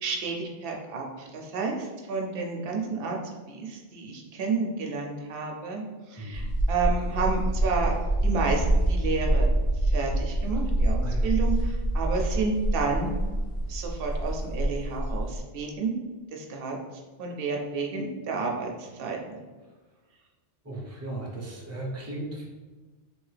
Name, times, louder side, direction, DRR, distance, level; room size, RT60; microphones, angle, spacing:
voice 1, 0.0-3.2 3.5-5.8 6.1-7.9 8.2-9.5 9.9-13.2 13.7-15.9 16.3-16.8 17.2-19.4, right 4 dB, 60° right, 1 dB, 0.7 m, -30 dB
voice 2, 6.2-6.5 11.0-11.3 20.6-22.5, right 2 dB, 20° right, -3 dB, 0.4 m, -36 dB
sound 1, 6.3-15.4, right 1 dB, 80° left, 1.0 m, -26 dB
2.8 x 2.7 x 3.2 m, 1.3 s
omnidirectional pair, 1.2 m